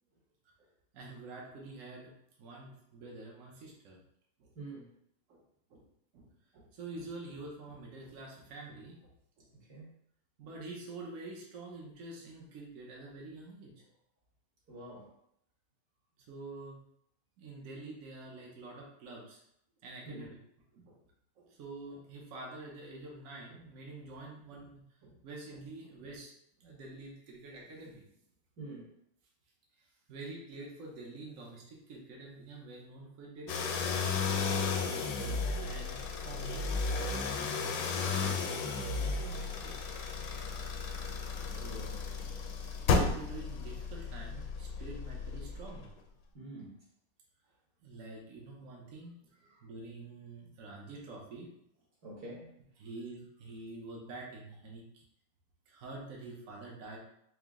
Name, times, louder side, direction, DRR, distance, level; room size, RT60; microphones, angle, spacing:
voice 1, 0.9-2.1 2.4-4.0 4.4-4.5 5.3-5.4 5.7-5.8 6.1-6.3 6.5-9.1 9.4-9.5 10.4-13.8 16.3-16.8 17.4-19.4 19.8-20.3 20.7-21.0 21.4-26.3 26.6-28.0 30.1-34.0 35.6-39.7 40.1-40.3 41.5-42.0 42.9-45.9 47.8-49.1 49.6-51.5 52.8-55.0 55.7-57.0, right 2 dB, 75° right, -2 dB, 0.7 m, -47 dB
voice 2, 4.5-4.9 9.5-9.9 14.7-15.1 20.0-20.3 28.6-28.9 34.8-35.5 41.5-41.9 46.3-46.8 49.4-49.6 52.0-52.5, right 2 dB, 50° right, -5 dB, 1.7 m, -47 dB
sound 1, 33.5-45.9, left 4 dB, 75° left, 1.0 m, -34 dB
4.9 x 2.1 x 3.5 m, 0.74 s
omnidirectional pair, 2.4 m